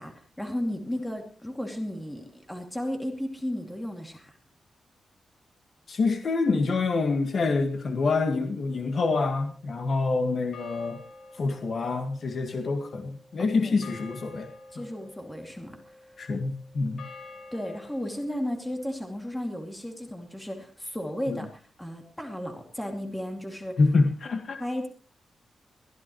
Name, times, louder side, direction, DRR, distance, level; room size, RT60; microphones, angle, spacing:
voice 1, 0.0-4.4 13.4-13.8 14.7-15.9 17.5-21.5 21.8-23.8 24.6-24.9, left 1 dB, 5° left, 3 dB, 2.5 m, -34 dB
voice 2, 5.9-11.0 11.4-14.5 14.8-14.9 16.2-17.1 21.3-21.4 23.8-24.6, left 3 dB, 50° left, 5 dB, 1.8 m, -26 dB
sound 1, 8.7-10.0 10.5-19.1, left 3 dB, 90° left, 5.0 m, -49 dB
22.0 x 15.0 x 3.1 m, 0.41 s
wide cardioid pair, 140°, 0 cm